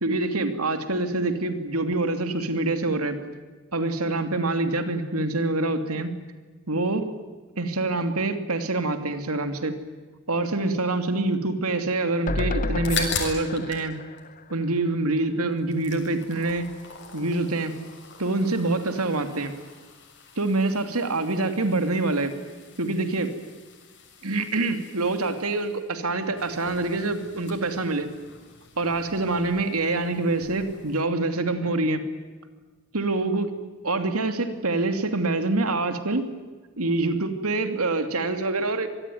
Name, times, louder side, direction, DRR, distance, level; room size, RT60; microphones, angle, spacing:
voice 1, 0.0-3.2 3.7-6.1 6.7-7.0 7.6-9.8 10.3-14.0 14.5-16.7 17.1-17.7 18.2-19.5 20.4-22.3 22.8-23.3 24.2-28.1 28.8-32.0 32.9-33.5 33.8-36.2 36.8-38.9, right 2 dB, 85° right, 8 dB, 2.8 m, -25 dB
sound 1, 12.3-15.5 15.9-16.0 16.2-16.3, left 2 dB, 40° left, 1.0 m, -31 dB
sound 2, 12.6-13.9 14.2-15.2 15.5-31.0, left 6 dB, 55° left, 6.9 m, -41 dB
25.5 x 20.5 x 9.5 m, 1.4 s
head